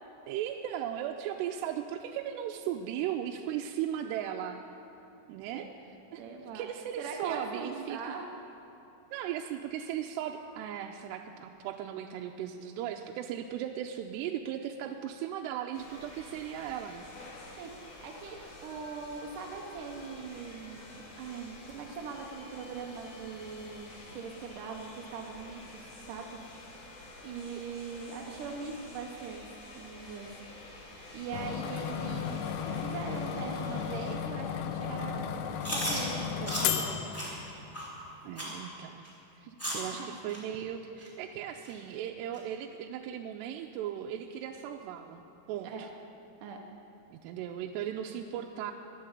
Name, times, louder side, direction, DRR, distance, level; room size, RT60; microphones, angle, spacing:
voice 1, 0.3-4.6 5.3-5.7 6.1-6.2 6.5-8.0 9.1-17.1 27.5-27.6 38.2-39.1 39.7-45.9 47.1-48.7, right 10 dB, 85° right, 3 dB, 2.7 m, -37 dB
voice 2, 6.2-6.7 7.0-8.3 17.6-26.8 27.2-29.5 29.7-30.3 31.1-37.2 39.7-40.1 45.6-45.9 46.4-46.6, right 5 dB, 70° right, 1 dB, 2.1 m, -41 dB
sound 1, 15.7-34.2, left 2 dB, 55° left, 3.0 m, -49 dB
sound 2, 31.3-37.8, left 8 dB, 85° left, 2.9 m, -34 dB
Chewing mastication, 35.6-36.0 36.5-36.7 37.1-37.3 37.7-37.9 38.4-38.5 39.0-39.1 39.6-39.9 40.3-40.4 41.0-41.1 41.6-41.7 42.3-42.4, equal, 5° left, 2.6 m, -34 dB
14.5 x 11.0 x 8.1 m, 2.9 s
omnidirectional pair, 4.8 m